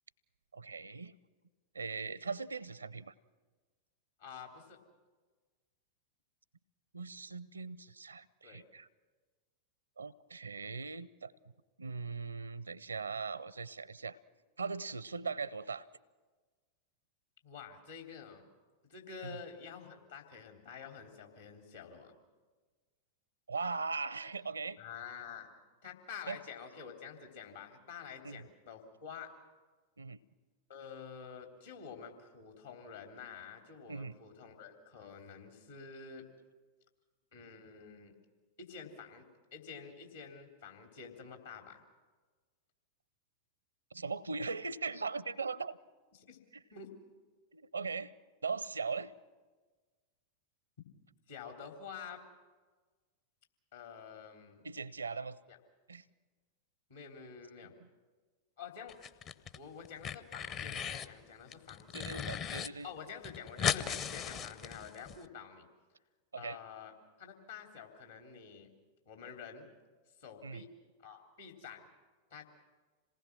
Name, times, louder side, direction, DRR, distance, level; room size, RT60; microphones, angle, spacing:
voice 1, 0.5-1.1 1.7-3.1 6.9-8.9 10.0-11.3 11.8-14.2 14.6-15.9 19.2-19.4 23.5-24.8 26.3-26.4 28.2-28.4 30.0-30.2 33.9-34.1 43.9-45.8 47.5-48.1 48.4-49.1 54.6-55.4 55.9-56.0 57.8-57.9 61.9-62.9 66.3-66.6 70.4-70.7, right 4 dB, 75° right, 21 dB, 0.6 m, -39 dB
voice 2, 4.2-4.8 8.4-8.6 17.4-18.5 18.8-22.1 24.8-25.5 25.8-29.3 30.7-36.3 37.3-38.2 38.6-39.2 39.5-41.8 46.3-46.4 46.7-46.9 51.3-52.2 53.7-54.7 55.5-55.6 56.9-57.7 58.6-59.0 59.5-62.2 62.8-65.7 66.4-68.7 69.0-69.6 70.2-70.7 71.0-71.9 72.3-72.4, left 6 dB, 65° left, 3 dB, 3.4 m, -48 dB
sound 1, 58.9-59.6 59.9-61.1 61.5-62.7 63.0-63.1 63.2-65.2, left 7 dB, 35° left, 0.8 m, -37 dB
27.0 x 19.0 x 6.1 m, 1.4 s
figure-of-eight pair, 90°, 0 cm